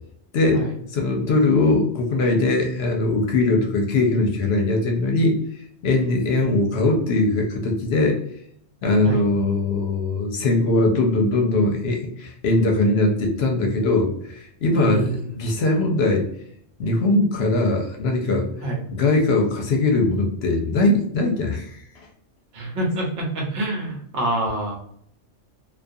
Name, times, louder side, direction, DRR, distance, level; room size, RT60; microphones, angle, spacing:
voice 1, 0.3-5.4 5.8-8.2 8.8-16.3 16.8-18.5 18.9-22.1, left 2 dB, 65° left, 2 dB, 0.8 m, -21 dB
voice 2, 14.7-15.2 18.6-18.8 22.5-24.7, right 2 dB, 70° right, -1 dB, 1.1 m, -26 dB
2.4 x 2.3 x 2.5 m, 0.68 s
omnidirectional pair, 1.2 m